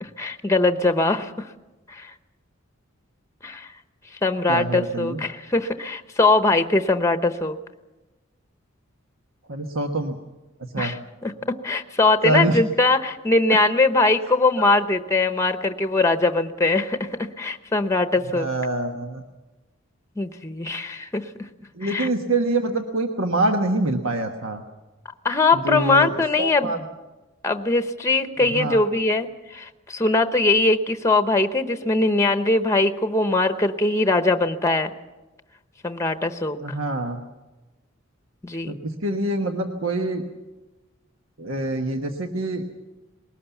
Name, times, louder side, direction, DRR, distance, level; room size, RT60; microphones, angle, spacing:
voice 1, 0.0-1.3 1.9-2.1 3.4-3.7 4.2-7.6 10.8-11.0 11.2-18.5 20.2-21.3 21.8-22.1 25.2-26.7 27.4-34.9 35.8-36.6 38.4-38.7, left 2 dB, 15° left, 9 dB, 0.9 m, -21 dB
voice 2, 4.5-5.2 9.5-10.2 10.7-10.9 12.2-12.6 14.6-14.7 18.3-19.2 21.7-24.6 25.5-26.8 28.4-28.8 36.6-37.2 38.7-40.2 41.4-42.7, right 2 dB, 80° right, 5 dB, 1.4 m, -25 dB
21.0 x 18.5 x 7.1 m, 1.1 s
head